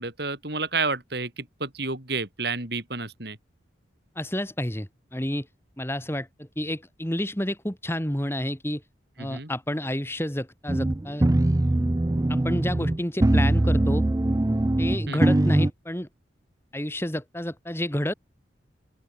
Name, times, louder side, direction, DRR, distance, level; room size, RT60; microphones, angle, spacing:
voice 1, 0.0-3.4 9.2-9.5 15.1-15.4, right 3 dB, 55° right, 4.2 m, -30 dB
voice 2, 4.1-5.5 5.8-8.8 9.2-11.3 12.3-14.1 14.8-16.1 16.7-18.1, left 1 dB, 10° left, 2.7 m, -30 dB
sound 1, 10.7-15.7, right 1 dB, 15° right, 0.4 m, -22 dB
open air
head